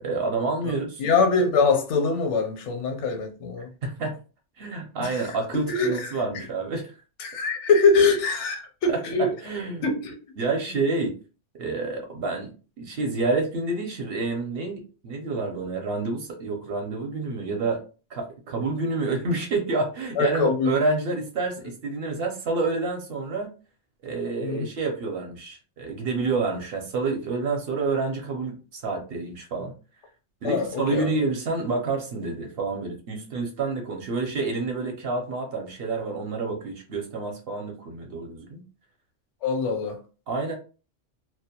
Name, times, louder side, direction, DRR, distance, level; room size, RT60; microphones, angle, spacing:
voice 1, 0.0-1.0 3.8-4.2 4.6-7.0 8.9-9.9 10.4-11.2 11.6-17.8 18.1-23.5 24.0-29.7 30.4-38.6 40.3-40.5, right 3 dB, 60° right, 0.8 m, -28 dB
voice 2, 1.0-3.7 5.0-5.2 5.5-6.2 7.2-9.3 9.8-10.2 20.2-20.7 24.4-24.7 30.4-31.1 39.4-40.0, left 4 dB, 80° left, 0.9 m, -23 dB
2.2 x 2.1 x 2.8 m
omnidirectional pair, 1.2 m